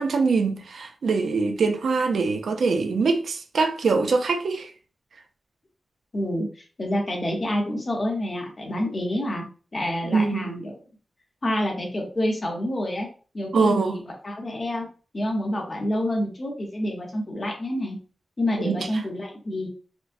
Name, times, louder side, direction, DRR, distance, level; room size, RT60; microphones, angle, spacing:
voice 1, 0.0-4.7 10.1-10.5 13.5-14.0 18.6-18.9, right 4 dB, 80° right, 0.4 m, -23 dB
voice 2, 6.1-6.5 6.8-9.4 9.7-10.7 11.4-13.1 13.3-14.9 15.1-18.0 18.4-19.7, left 1 dB, 30° left, 0.8 m, -27 dB
4.4 x 2.0 x 2.6 m
wide cardioid pair, 175°, 0 cm